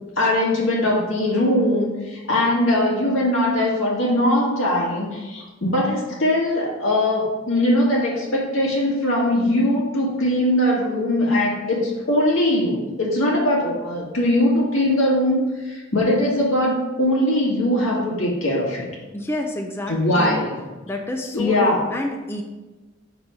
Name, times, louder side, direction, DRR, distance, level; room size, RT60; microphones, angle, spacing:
voice 1, 0.2-18.9 19.9-20.6 21.3-21.8, left 1 dB, 85° left, -4 dB, 1.9 m, -21 dB
voice 2, 19.1-20.4 20.9-22.4, left 1 dB, 10° left, 2 dB, 0.5 m, -28 dB
5.0 x 4.0 x 5.9 m, 1.2 s
head